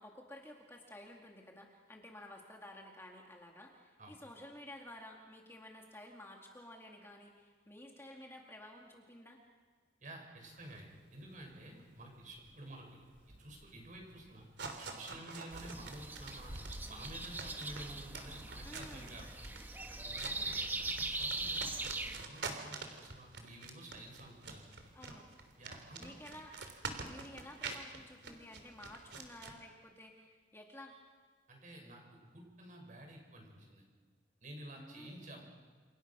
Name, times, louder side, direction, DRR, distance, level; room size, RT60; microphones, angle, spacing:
voice 1, 0.0-9.4 18.6-19.1 24.9-25.3 26.0-30.9 34.8-35.1, left 1 dB, 15° left, 1 dB, 2.2 m, -53 dB
voice 2, 10.0-13.0 13.4-14.5 14.8-16.5 16.8-19.5 20.0-24.7 25.6-26.2 31.5-33.8 34.4-35.4, right 1 dB, 40° right, 2 dB, 6.8 m, -51 dB
sound 1, 10.4-29.5, right 4 dB, 65° right, 3.4 m, -47 dB
sound 2, 15.5-22.2, right 2 dB, 10° right, 1.3 m, -41 dB
29.5 x 28.5 x 6.2 m, 1.5 s
head